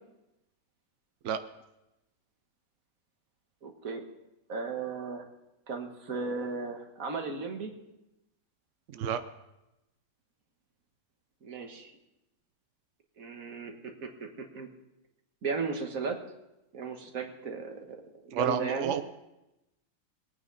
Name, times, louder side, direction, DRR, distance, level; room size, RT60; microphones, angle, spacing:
voice 1, 3.6-4.0 4.5-5.3 5.7-7.7 11.4-11.9 13.2-14.7 15.4-16.2 16.7-19.0, right 4 dB, 50° right, 4 dB, 1.8 m, -36 dB
voice 2, 18.3-19.0, right 8 dB, 70° right, 10 dB, 0.7 m, -30 dB
22.0 x 9.0 x 4.1 m, 0.92 s
omnidirectional pair, 2.0 m